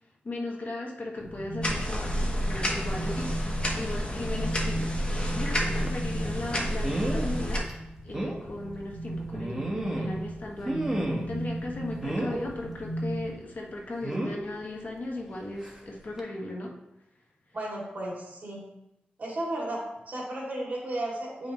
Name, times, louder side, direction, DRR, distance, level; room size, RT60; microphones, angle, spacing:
voice 1, 0.2-5.0 5.3-7.7 8.0-11.0 11.3-16.7, left 2 dB, 55° left, -1 dB, 1.2 m, -37 dB
sound 1, 1.2-13.3, right 1 dB, 75° left, 1.3 m, -37 dB
sound 2, 1.6-7.6, equal, 30° left, 1.1 m, -30 dB
sound 3, 5.9-6.0 6.8-7.3 7.7-7.8 8.1-8.4 9.3-10.2 10.6-11.4 12.0-12.5 14.0-14.4 15.6-15.8 16.2-16.3, right 1 dB, 10° right, 1.2 m, -31 dB
voice 2, 17.5-18.6 19.2-21.5, right 1 dB, 50° right, -4 dB, 2.6 m, -34 dB
8.7 x 5.2 x 3.1 m, 0.89 s
wide cardioid pair, 115°, 3 cm